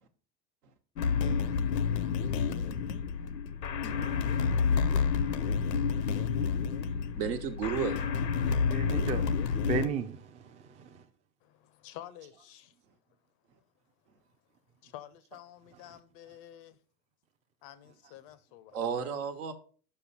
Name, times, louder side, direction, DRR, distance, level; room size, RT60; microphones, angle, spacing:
sound 1, 1.0-9.9, left 6 dB, 80° left, 0.7 m, -29 dB
voice 1, 7.1-8.0 18.7-19.5, right 8 dB, 65° right, 1.3 m, -32 dB
voice 2, 8.5-11.0 15.7-16.0 18.0-18.1, right 5 dB, 15° right, 0.5 m, -36 dB
voice 3, 11.8-12.7 14.8-16.7 17.6-18.8, left 12 dB, 40° left, 0.5 m, -49 dB
5.7 x 5.4 x 5.6 m
figure-of-eight pair, 85°, 49 cm